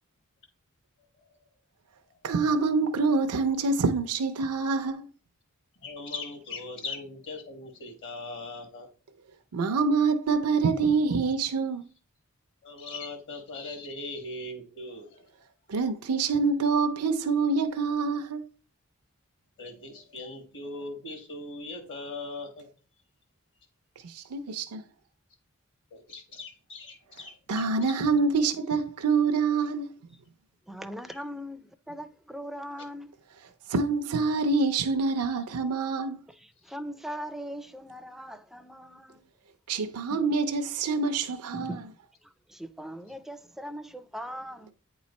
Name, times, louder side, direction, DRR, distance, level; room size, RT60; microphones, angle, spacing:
voice 1, 2.2-5.1 9.5-11.9 15.7-18.4 24.0-24.8 27.5-29.9 33.7-36.2 39.7-41.8, right 4 dB, 90° right, 0.5 m, -26 dB
voice 2, 5.8-8.9 12.6-15.2 19.6-22.7 25.9-27.7, left 3 dB, 55° left, 1.4 m, -39 dB
voice 3, 30.7-33.1 36.3-39.2 40.1-40.2 41.5-41.8 42.2-44.7, equal, ahead, 0.4 m, -40 dB
8.8 x 3.1 x 4.1 m
head